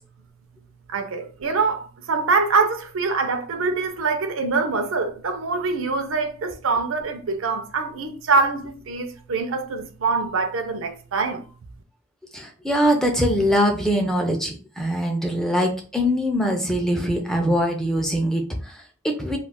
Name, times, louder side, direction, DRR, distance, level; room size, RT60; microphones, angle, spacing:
voice 1, 0.9-11.4, right 4 dB, 85° right, 0.5 m, -24 dB
voice 2, 12.3-19.4, equal, ahead, 0.4 m, -22 dB
2.4 x 2.3 x 3.4 m
head